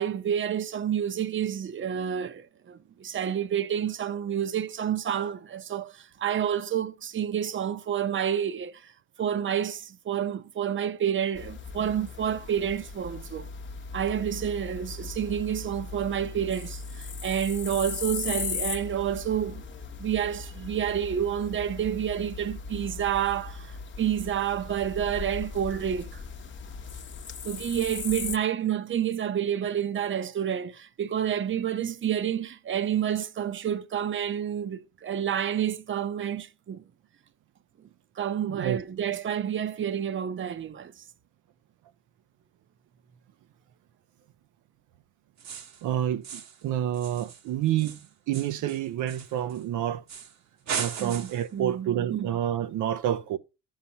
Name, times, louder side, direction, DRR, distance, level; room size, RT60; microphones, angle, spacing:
voice 1, 0.0-8.9 9.2-13.5 13.9-19.6 20.0-26.1 27.4-36.8 38.2-40.9 51.0-52.3, right 9 dB, 40° right, 0.7 m, -29 dB
sound 1, 11.3-28.4, left 5 dB, 40° left, 0.8 m, -38 dB
voice 2, 38.5-38.8 45.8-48.0 48.3-50.0 50.8-53.4, right 11 dB, 80° right, 0.5 m, -28 dB
sound 2, 45.4-45.8 46.2-46.6 46.9-49.6 50.1-50.4 50.7-51.5, right 7 dB, 65° right, 1.1 m, -37 dB
13.5 x 5.6 x 2.8 m
cardioid pair, 90°, 30 cm